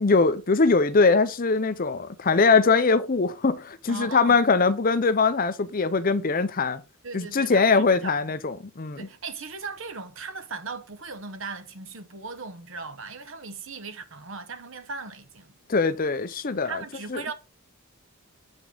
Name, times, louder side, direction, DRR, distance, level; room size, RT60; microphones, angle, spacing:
voice 1, 0.0-6.8 7.1-9.1 15.7-16.8 17.1-17.2, left 4 dB, 40° left, 0.6 m, -22 dB
voice 2, 3.9-4.5 7.0-8.2 9.0-15.5 16.6-17.3, right 4 dB, 60° right, 0.9 m, -38 dB
7.3 x 5.3 x 3.9 m
head